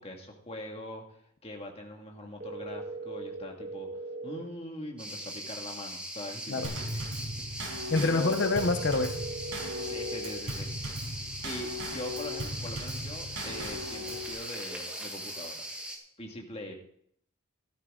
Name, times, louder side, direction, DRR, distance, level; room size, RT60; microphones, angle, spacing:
voice 1, 0.0-3.9 4.2-7.0 7.4-8.4 9.8-10.7 11.4-15.6 16.2-16.7, left 1 dB, 30° left, 1 dB, 1.9 m, -42 dB
sound 1, 2.4-4.4 8.4-10.4, right 2 dB, 40° right, 2.5 m, -39 dB
sound 2, 5.0-16.0, right 1 dB, 5° right, 1.7 m, -40 dB
Drum kit / Snare drum / Bass drum, 6.6-14.3, left 1 dB, 65° right, 5.0 m, -38 dB
voice 2, 7.9-9.2, left 3 dB, 55° left, 8 dB, 0.7 m, -26 dB
13.5 x 12.5 x 3.7 m, 0.66 s
head